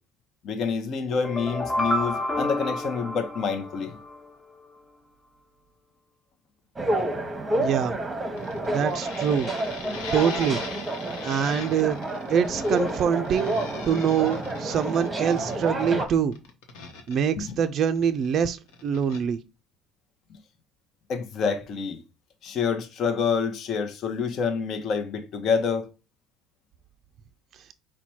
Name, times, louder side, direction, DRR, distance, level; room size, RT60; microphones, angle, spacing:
voice 1, 0.4-4.0 17.4-17.6 21.1-22.0 22.4-25.9, left 5 dB, 55° left, 0.7 m, -27 dB
sound 1, 1.1-4.2, left 1 dB, 20° left, 0.7 m, -29 dB
sound 2, 6.8-16.1, right 1 dB, 15° right, 0.9 m, -29 dB
voice 2, 7.6-7.9 8.7-9.5 10.1-10.6 11.2-12.0 12.3-13.6 13.9-16.3 17.1-19.4, right 7 dB, 50° right, 0.3 m, -24 dB
sound 3, 8.4-18.4 18.7-19.2, left 5 dB, 85° left, 0.9 m, -40 dB
4.1 x 2.2 x 4.4 m
supercardioid pair, 100°, 0 cm